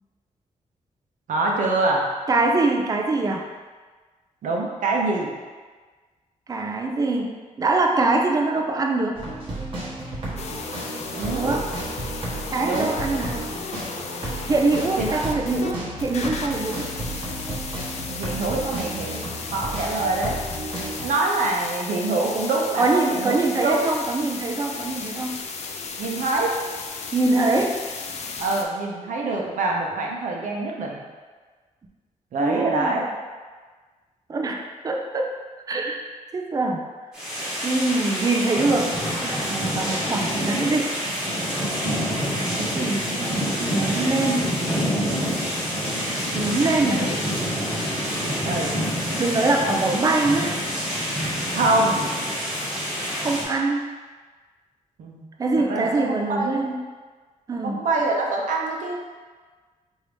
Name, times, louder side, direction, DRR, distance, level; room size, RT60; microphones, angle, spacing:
voice 1, 1.3-2.1 4.4-5.3 11.1-11.6 12.6-12.9 15.0-15.2 18.1-19.2 19.5-20.4 21.0-23.4 23.6-23.8 26.0-26.5 28.4-31.0 32.3-33.0 41.8-42.3 47.0-47.1 48.4-48.7 49.9-50.0 51.5-52.0 55.0-55.2 55.7-55.9 56.3-56.6 57.6-59.0, right 2 dB, 70° right, -1 dB, 0.7 m, -25 dB
voice 2, 2.3-3.5 6.5-9.2 11.3-11.7 12.5-13.4 14.5-16.9 22.8-25.4 27.1-27.8 32.4-33.1 34.3-35.3 35.7-36.1 36.3-36.9 37.6-39.0 39.2-40.9 42.4-44.5 46.3-47.1 49.2-50.5 53.2-53.9 55.4-56.8 57.5-57.8, right 3 dB, 25° right, 2 dB, 0.4 m, -23 dB
sound 1, 9.1-21.1, right 1 dB, 45° right, 1.0 m, -33 dB
sound 2, 10.4-15.7 16.0-28.6, left 4 dB, 55° left, 0.4 m, -35 dB
sound 3, 37.1-53.4, equal, 5° right, 1.2 m, -27 dB
4.7 x 2.7 x 3.3 m, 1.4 s
wide cardioid pair, 160°, 13 cm